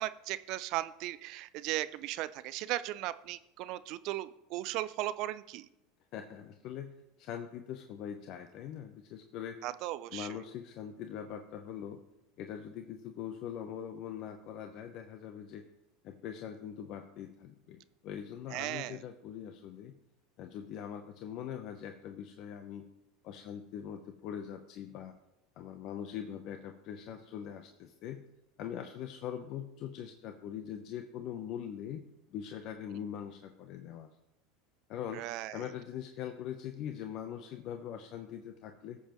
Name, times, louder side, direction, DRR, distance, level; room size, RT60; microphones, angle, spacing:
voice 1, 0.0-5.7 9.6-10.3 18.5-19.0 35.1-35.6, right 15 dB, 60° right, 15 dB, 0.4 m, -37 dB
voice 2, 6.1-6.9 7.2-9.6 10.1-12.0 12.4-15.6 16.0-19.9 20.4-22.8 23.2-25.1 25.6-28.2 28.6-32.0 32.3-34.1 34.9-35.2 35.5-39.0, left 9 dB, 55° left, 6 dB, 0.7 m, -42 dB
17.5 x 7.1 x 3.0 m, 0.85 s
hypercardioid pair, 90°, 0 cm